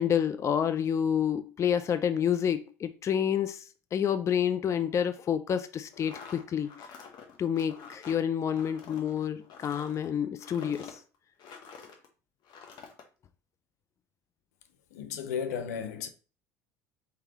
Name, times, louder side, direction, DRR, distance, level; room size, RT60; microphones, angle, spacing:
voice 1, 0.0-6.7 7.4-11.0, left 8 dB, 35° left, 0.4 m, -29 dB
sound 1, 5.9-12.1 12.4-13.0, left 6 dB, 55° left, 1.1 m, -48 dB
voice 2, 14.9-16.1, left 7 dB, 80° left, 0.6 m, -34 dB
4.6 x 3.8 x 2.9 m
hypercardioid pair, 75°, 8 cm